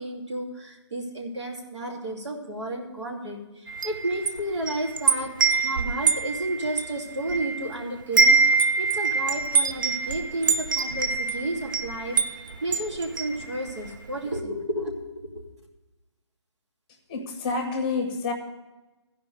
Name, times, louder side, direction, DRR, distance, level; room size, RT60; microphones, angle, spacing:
voice 1, 0.0-3.4 3.8-8.4 8.8-12.2 12.6-15.0, right 1 dB, 85° right, -1 dB, 2.7 m, -32 dB
Wind chime, 3.7-7.7 8.0-13.9, right 4 dB, 45° right, 0.5 m, -24 dB
voice 2, 17.1-18.3, left 4 dB, 20° left, 3 dB, 1.1 m, -28 dB
13.0 x 5.1 x 7.9 m, 1.1 s
hypercardioid pair, 160°, 15 cm